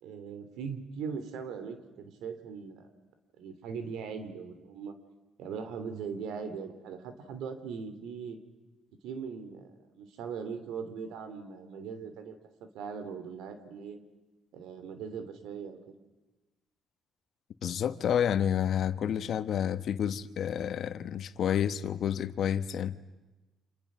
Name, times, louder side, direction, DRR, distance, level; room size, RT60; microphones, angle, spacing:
voice 1, 0.0-2.9 3.4-4.9 5.4-8.4 9.0-12.4 12.7-14.0 14.5-15.8, right 6 dB, 90° right, 2.9 m, -40 dB
voice 2, 17.6-23.0, left 9 dB, 65° left, 1.2 m, -29 dB
29.5 x 27.0 x 6.2 m
cardioid pair, 90°, 0 cm